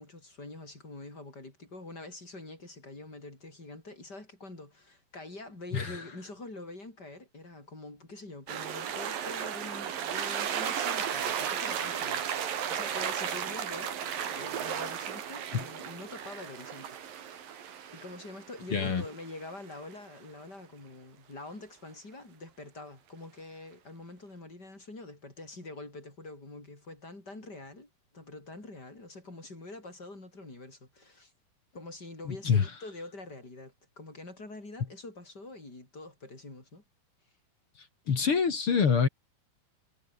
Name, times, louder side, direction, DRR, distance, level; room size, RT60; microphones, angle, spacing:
voice 1, 0.0-14.0 14.4-31.3 31.7-36.8, left 2 dB, 25° left, 7.1 m, -45 dB
sound 1, 8.5-19.9, right 8 dB, 70° right, 4.2 m, -35 dB
voice 2, 18.7-19.0 32.3-32.7 38.1-39.1, left 6 dB, 40° left, 2.6 m, -25 dB
omnidirectional pair, 4.3 m